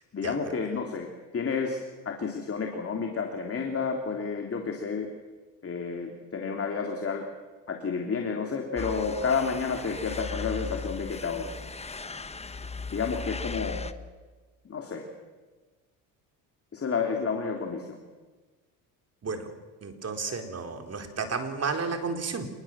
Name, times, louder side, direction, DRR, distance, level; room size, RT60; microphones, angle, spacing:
voice 1, 0.1-1.1 1.3-1.8 2.0-5.1 5.6-7.2 7.7-11.5 12.9-13.8 14.6-15.0 16.7-18.0, left 5 dB, 30° left, 2 dB, 3.2 m, -30 dB
sound 1, 8.8-13.9, left 4 dB, 15° left, 1.2 m, -37 dB
voice 2, 19.8-22.5, right 4 dB, 35° right, 5 dB, 4.1 m, -32 dB
26.5 x 21.0 x 7.5 m, 1.3 s
supercardioid pair, 95°, 44 cm